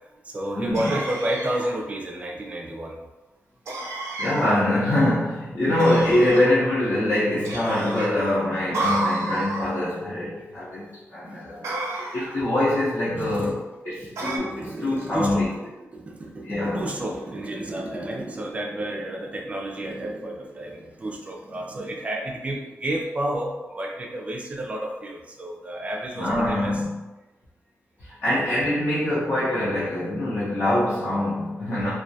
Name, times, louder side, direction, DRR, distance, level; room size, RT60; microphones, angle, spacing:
voice 1, 0.0-3.0 11.4-12.0 13.1-26.8, right 1 dB, 25° right, 0 dB, 0.3 m, -31 dB
voice 2, 0.5-1.0 4.2-11.7 12.0-13.5 13.8-15.5 16.4-16.8 26.2-26.9 28.0-31.9, left 1 dB, 45° left, -11 dB, 0.6 m, -24 dB
sound 1, 0.7-1.8 3.7-4.6 5.8-6.5 7.4-8.1 8.7-9.7 11.6-12.4 14.2-14.4, right 2 dB, 85° right, 0.5 m, -30 dB
2.2 x 2.1 x 2.6 m, 1.1 s
wide cardioid pair, 165°, 5 cm